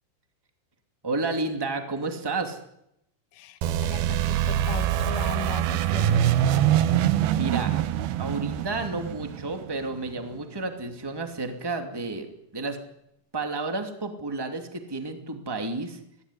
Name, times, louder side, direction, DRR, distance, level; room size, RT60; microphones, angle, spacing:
voice 1, 1.0-2.6 7.3-7.7 8.2-12.8 13.3-16.0, right 3 dB, 40° right, 5 dB, 0.3 m, -31 dB
voice 2, 3.3-6.4, left 11 dB, 80° left, 11 dB, 3.9 m, -38 dB
sound 1, 3.6-10.2, right 11 dB, 75° right, 2.3 m, -24 dB
24.0 x 17.0 x 9.9 m, 0.78 s
omnidirectional pair, 5.7 m